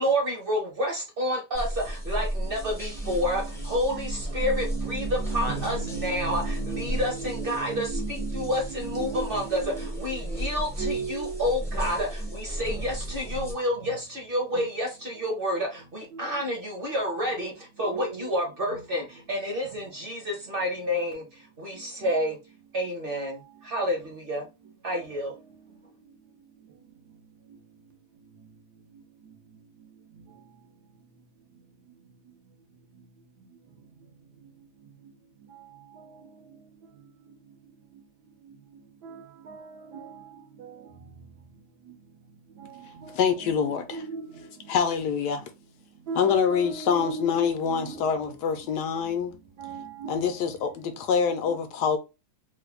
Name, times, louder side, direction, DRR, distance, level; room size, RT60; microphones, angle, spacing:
voice 1, 0.0-22.4 22.7-24.5 24.8-25.3, equal, 40° right, 0.9 m, -29 dB
sound 1, 1.5-13.5, right 1 dB, 5° left, 0.4 m, -34 dB
voice 2, 2.4-9.9 10.8-13.6 13.8-13.9 14.5-14.7 16.1-16.5 17.8-18.4 18.7-18.8 19.6-20.2 21.7-22.1 23.1-23.7 24.9-44.8 45.3-48.5 48.8-50.6 50.9-51.1 51.4-51.7, right 5 dB, 70° right, 1.3 m, -41 dB
voice 3, 43.1-44.0 44.7-45.4 46.2-49.3 50.1-52.0, left 6 dB, 75° left, 1.1 m, -25 dB
3.5 x 2.2 x 3.3 m
omnidirectional pair, 1.9 m